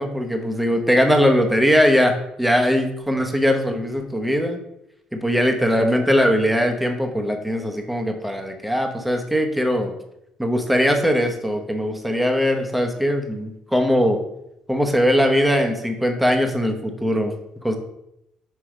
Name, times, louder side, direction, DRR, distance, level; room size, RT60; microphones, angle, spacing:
voice 1, 0.0-4.6 5.1-10.0 10.4-14.2 14.7-17.3 17.6-17.8, equal, 5° right, 4 dB, 0.9 m, -20 dB
6.2 x 4.5 x 4.9 m, 0.82 s
cardioid pair, 125°, 2 cm